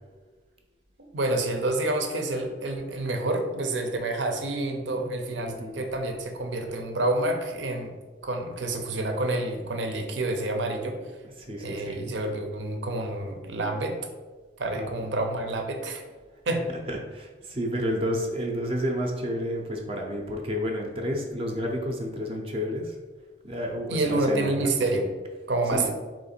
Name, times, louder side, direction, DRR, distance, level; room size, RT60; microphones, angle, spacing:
voice 1, 1.1-7.9 8.2-11.0 11.6-14.0 14.6-16.0 16.5-16.7 23.9-25.1 25.5-25.9, right 2 dB, 80° right, 4 dB, 0.7 m, -28 dB
voice 2, 4.9-5.9 10.8-12.1 14.7-15.2 16.5-23.0 23.4-24.7 25.7-25.9, equal, 30° right, 1 dB, 0.5 m, -31 dB
3.9 x 3.1 x 4.3 m, 1.3 s
head